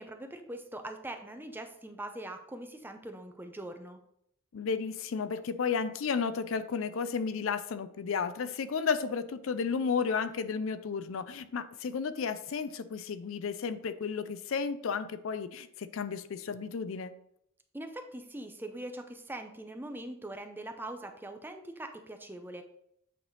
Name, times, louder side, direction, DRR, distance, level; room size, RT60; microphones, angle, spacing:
voice 1, 0.0-4.0 17.7-22.6, right 1 dB, 10° right, 6 dB, 0.5 m, -42 dB
voice 2, 4.5-17.1, left 5 dB, 65° left, 12 dB, 0.4 m, -33 dB
8.5 x 3.4 x 4.0 m, 0.73 s
head